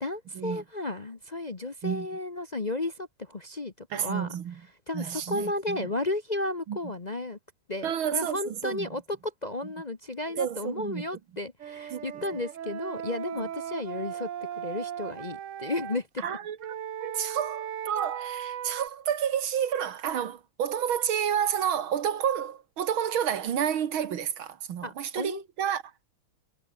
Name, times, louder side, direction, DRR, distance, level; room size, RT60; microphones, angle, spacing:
voice 1, 0.0-4.3 4.9-7.4 7.7-14.3 14.6-16.2 24.8-25.4, left 2 dB, 30° left, 0.9 m, -33 dB
voice 2, 3.9-4.6 4.9-5.9 6.7-6.8 7.8-8.9 10.3-11.1 11.9-12.2 13.3-13.4 16.2-16.6 17.0-25.8, right 9 dB, 85° right, 2.3 m, -30 dB
Wind instrument woodwind instrument, 11.6-16.0 16.6-18.9, right 9 dB, 55° right, 1.0 m, -37 dB
omnidirectional pair, 2.2 m